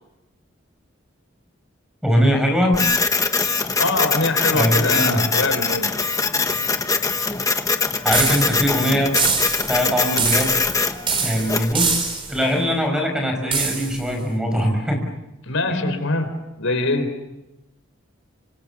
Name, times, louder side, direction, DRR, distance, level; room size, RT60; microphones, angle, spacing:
voice 1, 2.0-2.8 4.5-5.2 8.0-9.1 9.7-10.6 11.2-15.1 15.7-16.0, equal, 5° right, 3 dB, 6.0 m, -21 dB
Printer, 2.7-11.7, left 4 dB, 15° left, 1.3 m, -22 dB
voice 2, 3.8-5.9 15.4-16.3 16.6-17.1, left 2 dB, 85° left, 9 dB, 4.1 m, -23 dB
sound 1, 8.1-8.7 9.2-9.8 10.2-10.8 11.1-12.4 13.5-14.0, right 5 dB, 25° right, 4.7 m, -24 dB
29.0 x 26.5 x 7.3 m, 0.96 s
head